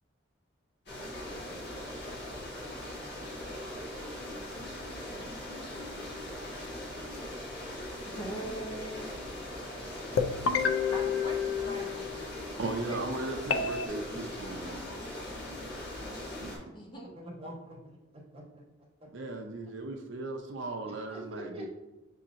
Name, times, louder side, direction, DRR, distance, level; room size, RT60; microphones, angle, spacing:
sound 1, 0.9-16.6, left 1 dB, 55° left, 1.4 m, -40 dB
voice 1, 8.0-9.0 10.9-12.3 12.9-13.0 16.7-17.1, right 1 dB, 25° left, -1 dB, 0.6 m, -41 dB
voice 2, 9.9-10.4 17.2-17.8 18.3-18.6 21.1-21.7, equal, 30° right, -4 dB, 1.0 m, -44 dB
sound 2, 10.2-12.3 13.5-13.9, left 6 dB, 85° left, 0.4 m, -29 dB
voice 3, 12.6-14.8 16.4-16.5 19.1-21.7, right 2 dB, 70° right, 2 dB, 0.5 m, -37 dB
6.3 x 2.9 x 2.5 m, 1.0 s
head